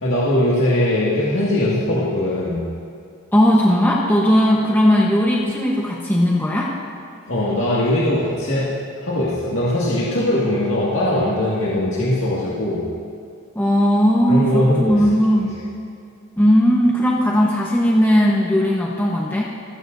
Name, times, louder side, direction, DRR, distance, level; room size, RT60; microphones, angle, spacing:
voice 1, 0.0-2.7 7.3-8.7 9.0-12.9 14.3-15.0 15.4-15.5, left 1 dB, 60° left, -8 dB, 2.1 m, -20 dB
voice 2, 3.3-6.7 13.5-15.6 16.4-19.5, equal, 10° left, -4 dB, 1.0 m, -17 dB
28.0 x 15.0 x 2.7 m, 2.4 s
head